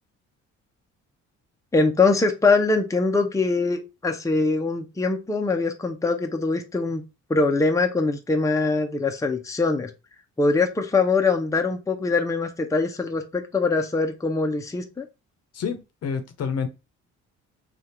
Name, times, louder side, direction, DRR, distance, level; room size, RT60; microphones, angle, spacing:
voice 1, 1.7-7.0 7.3-9.9 10.4-15.1, left 3 dB, 10° left, 0.7 m, -23 dB
voice 2, 15.5-16.7, left 6 dB, 55° left, 0.8 m, -28 dB
3.4 x 2.4 x 4.2 m
cardioid pair, 90°, 30 cm